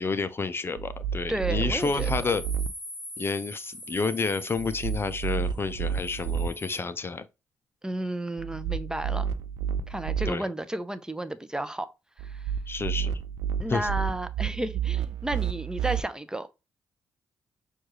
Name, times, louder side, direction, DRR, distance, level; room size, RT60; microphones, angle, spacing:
voice 1, 0.0-2.4 3.2-7.3 10.3-10.5 12.7-13.1 13.7-13.9, left 4 dB, 35° left, 0.4 m, -30 dB
sound 1, 0.8-2.7 4.6-6.5 8.4-10.3 12.2-16.0, right 8 dB, 80° right, 0.4 m, -30 dB
voice 2, 1.3-2.1 7.8-9.3 9.9-11.9 12.2-12.4 13.6-16.5, right 1 dB, 10° right, 0.6 m, -32 dB
sound 2, 1.8-6.8, equal, 20° left, 1.9 m, -42 dB
6.1 x 2.4 x 3.0 m
supercardioid pair, 50°, 7 cm